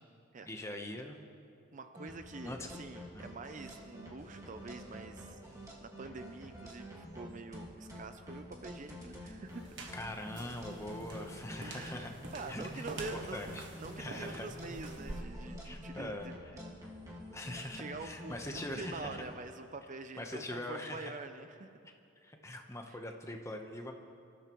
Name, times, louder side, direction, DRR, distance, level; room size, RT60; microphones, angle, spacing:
voice 1, 0.4-1.2 2.4-2.7 3.1-3.3 9.9-12.1 12.5-12.9 13.3-13.6 14.0-14.5 15.6-16.3 17.3-19.2 20.2-21.1 22.2-23.9, left 1 dB, 15° left, 3 dB, 1.0 m, -42 dB
voice 2, 1.7-5.4 5.8-9.7 11.6-16.3 17.7-21.7 22.9-23.0, right 3 dB, 35° right, 8 dB, 0.5 m, -46 dB
sound 1, 2.0-19.3, equal, 15° right, 1.8 m, -47 dB
sound 2, 9.5-15.2, right 2 dB, 55° right, 1.6 m, -48 dB
25.5 x 13.5 x 3.1 m, 2.6 s
head